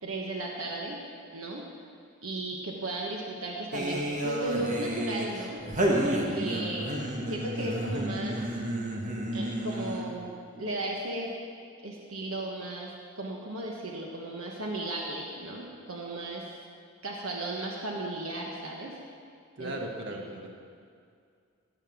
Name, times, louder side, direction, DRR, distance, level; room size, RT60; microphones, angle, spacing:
voice 1, 0.0-1.0 1.3-1.6 2.2-5.6 6.0-8.4 9.3-11.3 11.8-16.5 17.0-18.9 19.6-19.7 20.1-20.2, right 1 dB, 80° right, -1 dB, 1.3 m, -35 dB
sound 1, 3.7-10.2, right 1 dB, 40° right, 1.4 m, -31 dB
voice 2, 19.6-20.6, right 1 dB, 60° right, 2 dB, 1.5 m, -37 dB
16.5 x 5.8 x 7.2 m, 2.3 s
head